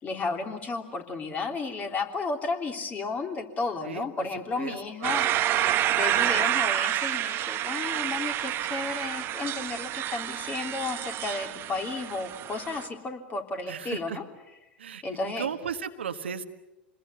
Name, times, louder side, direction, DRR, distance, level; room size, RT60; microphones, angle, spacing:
voice 1, 0.0-14.2 15.0-15.5, left 3 dB, 25° left, 4 dB, 3.3 m, -33 dB
voice 2, 4.6-5.1 13.7-14.2 14.8-15.0 15.4-16.4, right 7 dB, 80° right, 7 dB, 1.5 m, -35 dB
sound 1, 5.0-12.9, right 13 dB, 40° right, 1.2 m, -28 dB
27.0 x 21.0 x 8.3 m, 0.98 s
hypercardioid pair, 90°, 6 cm